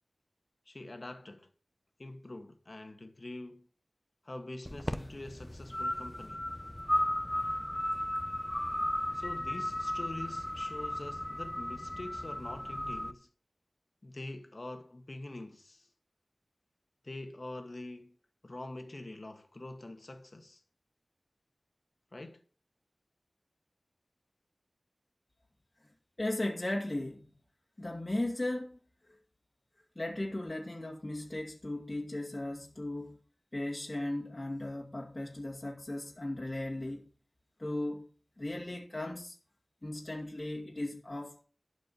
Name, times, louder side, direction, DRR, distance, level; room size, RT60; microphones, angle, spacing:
voice 1, 0.7-1.5 2.0-3.7 4.2-6.4 9.1-13.3 14.0-15.9 17.0-18.2 18.4-20.6 22.1-22.4, left 2 dB, 55° left, 1.9 m, -45 dB
sound 1, 4.7-13.1, left 1 dB, 15° left, 1.0 m, -35 dB
voice 2, 26.2-27.3 27.8-28.8 29.1-29.2 30.0-33.2 33.5-37.1 37.6-38.1 38.4-39.4 39.8-41.4, left 1 dB, 35° left, 2.3 m, -36 dB
12.0 x 5.2 x 7.7 m
wide cardioid pair, 55°, 0 cm